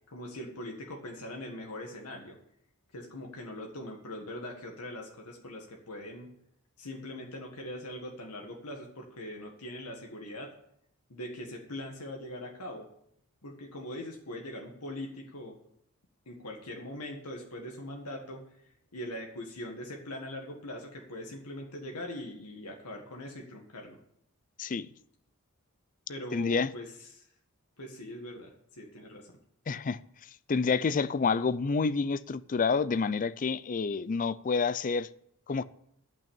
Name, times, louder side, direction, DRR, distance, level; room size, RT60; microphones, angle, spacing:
voice 1, 0.1-2.4 2.9-6.3 6.8-10.5 11.1-12.9 13.4-15.6 16.3-18.4 18.9-24.0 26.1-27.3 27.8-29.4, left 1 dB, 90° left, 1.7 m, -41 dB
voice 2, 26.3-26.7 29.7-30.0 30.5-35.1 35.5-35.6, left 4 dB, 35° left, 0.4 m, -28 dB
11.0 x 5.9 x 8.8 m
head